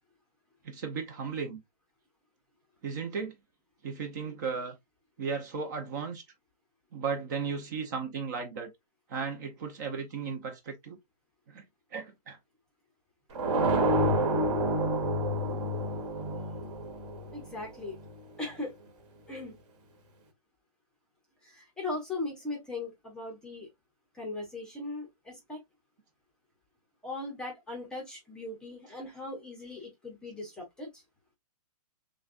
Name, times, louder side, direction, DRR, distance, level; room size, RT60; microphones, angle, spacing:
voice 1, 0.6-1.6 2.8-3.3 3.8-4.8 5.2-6.2 6.9-8.7 9.1-11.0 11.5-11.6 11.9-12.4, right 5 dB, 30° right, 0.8 m, -35 dB
sound 1, 13.4-18.1, right 1 dB, 50° right, 2.2 m, -28 dB
voice 2, 17.3-18.0 18.4-18.7 19.3-19.5 21.4-23.7 24.1-25.6 27.0-31.0, left 2 dB, 5° left, 0.8 m, -39 dB
6.3 x 2.3 x 2.5 m
hypercardioid pair, 170°, 20 cm